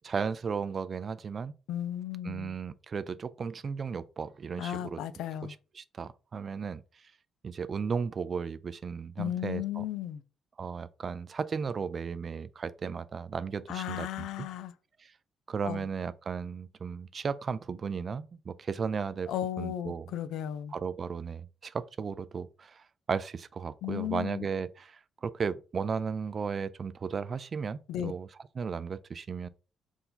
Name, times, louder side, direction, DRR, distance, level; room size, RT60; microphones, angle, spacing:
voice 1, 0.0-1.5 2.2-5.0 5.4-7.1 7.4-9.8 10.6-14.3 15.0-15.1 15.5-19.3 19.6-20.1 20.7-28.3 28.6-29.5, right 6 dB, 45° right, 0.3 m, -35 dB
voice 2, 1.7-2.5 4.6-5.5 9.2-10.2 13.7-14.7 15.6-15.8 19.3-20.7 23.8-24.5 27.9-28.1, left 11 dB, 85° left, 0.3 m, -35 dB
4.5 x 2.7 x 3.7 m
cardioid pair, 90°, 0 cm